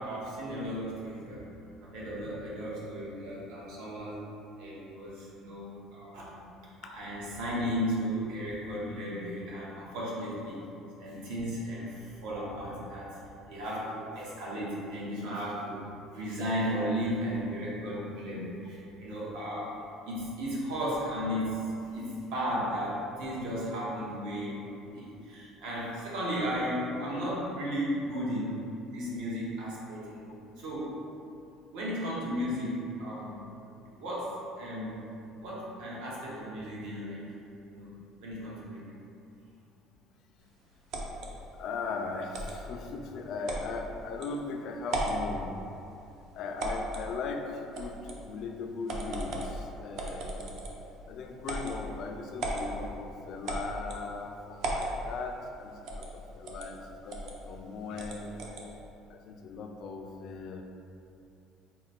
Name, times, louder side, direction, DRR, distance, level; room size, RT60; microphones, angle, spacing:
voice 1, 0.0-1.5 1.8-4.2 4.6-6.3 6.8-10.7 11.0-15.8 16.1-24.6 24.9-28.6 28.9-31.0 31.7-33.5 34.0-35.0 35.4-37.3 37.7-37.9 38.2-38.9, equal, 75° right, -6 dB, 1.0 m, -35 dB
sound 1, 40.9-41.3 42.3-42.6 43.5-43.7 44.2-44.3 44.8-45.2 46.6-47.1 47.7-48.2 48.9-49.5 50.0-50.8 51.4-51.8 52.4-52.7 53.5-54.0 54.6-54.9 55.9-56.1 56.5-56.7 57.1-57.3 58.0-58.7, right 2 dB, 55° right, 0.5 m, -35 dB
voice 2, 41.6-45.5 46.3-50.6 51.1-58.5 59.1-60.6, left 4 dB, 45° left, 4 dB, 0.3 m, -39 dB
3.9 x 2.1 x 4.2 m, 2.7 s
cardioid pair, 165°, 0 cm